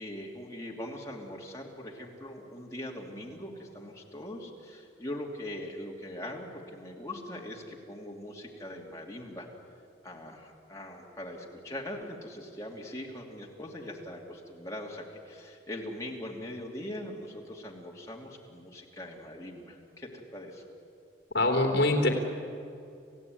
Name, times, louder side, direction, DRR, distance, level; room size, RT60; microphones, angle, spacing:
voice 1, 0.0-9.5 10.0-20.6, left 1 dB, 15° left, -2 dB, 3.0 m, -41 dB
voice 2, 21.3-22.1, left 2 dB, 60° left, 2 dB, 3.3 m, -24 dB
29.0 x 15.5 x 9.5 m, 2.6 s
head